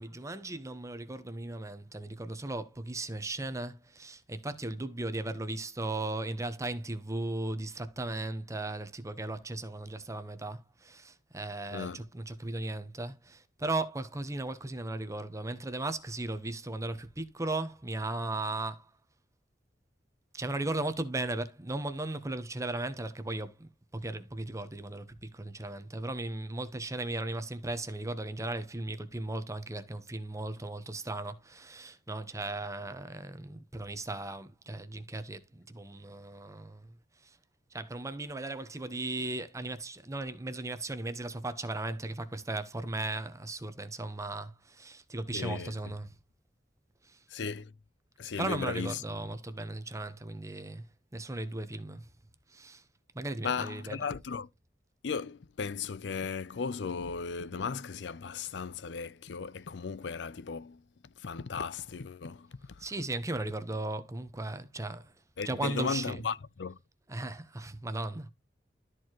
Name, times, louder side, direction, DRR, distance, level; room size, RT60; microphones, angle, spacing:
voice 1, 0.0-18.9 20.3-36.9 37.2-37.4 37.7-46.1 47.0-47.2 48.4-50.8 51.1-52.1 52.5-52.8 53.1-54.1 62.8-65.1 65.4-66.2 67.1-68.3, right 2 dB, 20° right, 0.9 m, -37 dB
voice 2, 11.7-12.1 45.3-45.7 47.3-47.7 48.2-49.0 53.4-54.5 55.0-60.8 61.2-62.9 65.4-66.8, left 5 dB, 80° left, 0.5 m, -36 dB
13.0 x 4.7 x 3.0 m
head